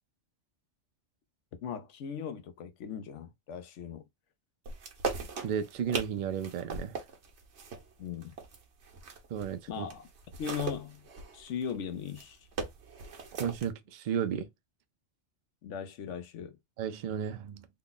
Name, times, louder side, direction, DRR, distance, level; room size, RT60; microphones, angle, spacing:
voice 1, 1.6-4.0 8.0-8.3 9.7-10.1 10.4-11.1 11.3-12.5 15.6-16.6, left 7 dB, 85° left, 1.0 m, -38 dB
sound 1, 4.7-9.6 9.9-13.7, right 4 dB, 75° right, 1.1 m, -39 dB
voice 2, 5.4-7.0 9.3-9.9 13.4-14.5 16.8-17.7, right 8 dB, 60° right, 0.5 m, -33 dB
3.3 x 2.2 x 3.8 m
omnidirectional pair, 1.2 m